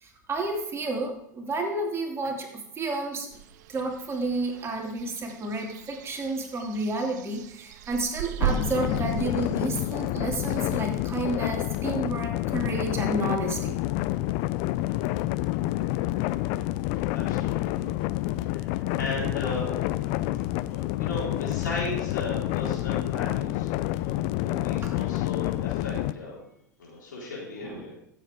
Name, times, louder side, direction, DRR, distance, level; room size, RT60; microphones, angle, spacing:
voice 1, 0.0-3.3 3.7-13.8 24.8-24.9 27.6-27.8, right 2 dB, 25° right, 1 dB, 2.5 m, -31 dB
sound 1, 3.3-11.3, right 10 dB, 70° right, 0.5 m, -37 dB
sound 2, 8.4-26.1, left 16 dB, 55° left, 0.4 m, -28 dB
voice 2, 16.9-17.8 18.4-19.7 20.7-26.4 26.8-27.9, left 2 dB, 85° left, -4 dB, 4.3 m, -36 dB
14.5 x 7.8 x 3.6 m, 0.73 s
hypercardioid pair, 90°, 10 cm